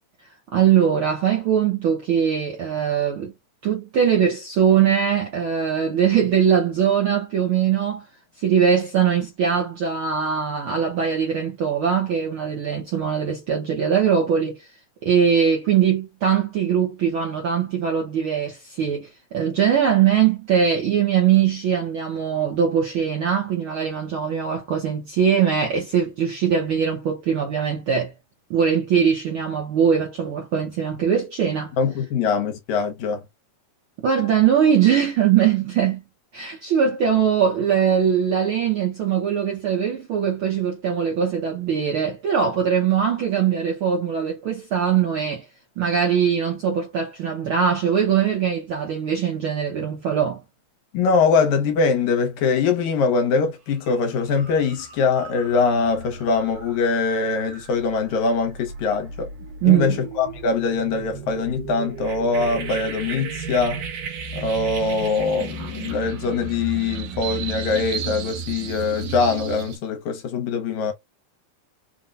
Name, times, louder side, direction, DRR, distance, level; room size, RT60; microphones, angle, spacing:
voice 1, 0.5-3.3 3.6-8.1 8.4-14.7 15.0-28.1 28.5-31.7 34.0-36.0 36.3-45.4 45.8-50.4 59.6-60.0, right 8 dB, 70° right, 1.3 m, -21 dB
voice 2, 31.8-33.2 50.9-59.3 59.6-63.9 64.3-70.9, left 4 dB, 75° left, 2.2 m, -22 dB
sound 1, 53.7-53.9 54.3-69.8, right 6 dB, 85° right, 2.7 m, -34 dB
5.5 x 2.2 x 2.5 m
omnidirectional pair, 3.5 m